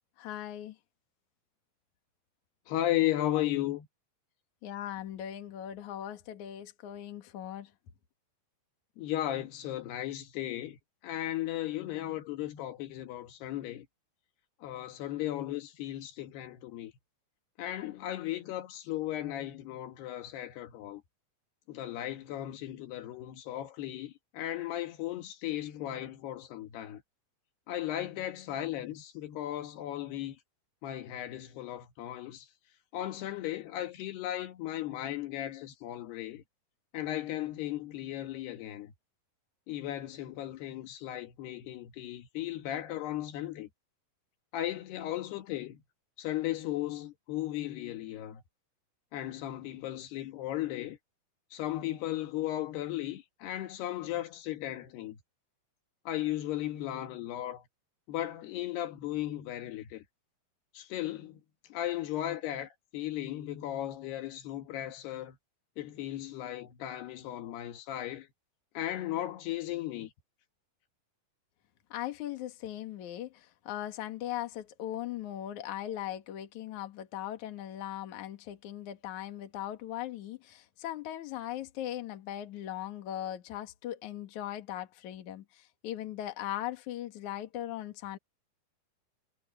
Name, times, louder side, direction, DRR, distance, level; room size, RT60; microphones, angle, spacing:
voice 1, 0.2-0.8 4.6-7.7 71.9-88.2, left 12 dB, 55° left, 2.8 m, -39 dB
voice 2, 2.7-3.9 9.0-10.8 11.0-13.9 14.6-16.9 17.6-21.0 21.7-27.0 27.7-30.4 30.8-32.5 32.9-36.4 36.9-38.9 39.7-43.7 44.5-45.8 46.2-48.4 49.1-51.0 51.5-55.2 56.1-57.6 58.1-60.0 60.8-61.4 61.7-65.4 65.8-68.3 68.8-70.1, left 13 dB, 80° left, 3.5 m, -36 dB
omnidirectional pair, 4.7 m